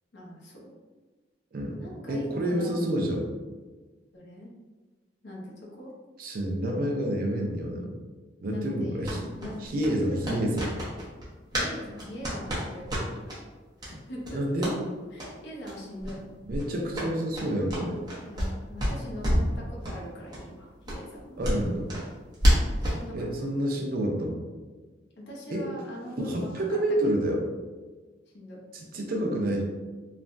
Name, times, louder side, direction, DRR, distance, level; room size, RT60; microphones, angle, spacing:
voice 1, 0.1-0.7 1.8-3.1 4.1-4.5 5.2-5.9 8.5-9.1 9.4-10.2 11.5-13.3 13.8-14.6 15.1-16.2 16.9-17.2 18.2-21.4 22.8-23.3 25.2-26.6 27.0-27.3 28.3-28.6, left 1 dB, 75° left, -3 dB, 0.7 m, -41 dB
voice 2, 1.5-1.8 2.1-3.3 6.2-8.0 8.4-9.3 9.6-10.7 14.3-14.8 16.4-18.0 21.4-21.9 23.1-24.4 25.5-25.6 26.2-27.4 28.7-29.6, right 1 dB, 50° right, 0 dB, 0.5 m, -28 dB
sound 1, 9.0-11.7 12.0-13.4 13.8-13.9 14.2-14.8 15.1-15.3 15.6-15.7 16.0-16.2 16.5-18.5 18.8-19.5 19.8-20.0 20.3-20.4 20.8-23.0, equal, 20° right, 0.8 m, -28 dB
3.2 x 2.1 x 2.5 m, 1.3 s
head